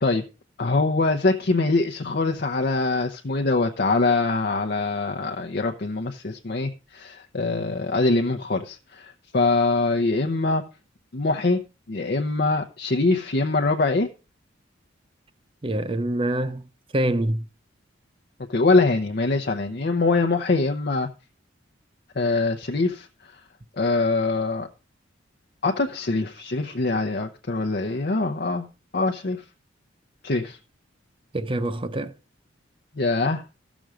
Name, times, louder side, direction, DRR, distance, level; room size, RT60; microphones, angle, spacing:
voice 1, 0.6-10.7 11.1-11.6 11.9-14.1 18.5-21.1 22.1-23.4 23.8-24.7 25.6-28.7 28.9-29.4 30.2-30.6 33.0-33.4, left 3 dB, 55° left, 0.8 m, -23 dB
voice 2, 15.6-16.6 16.9-17.5 31.3-32.1, right 1 dB, 30° right, 0.7 m, -25 dB
14.5 x 6.2 x 5.0 m
head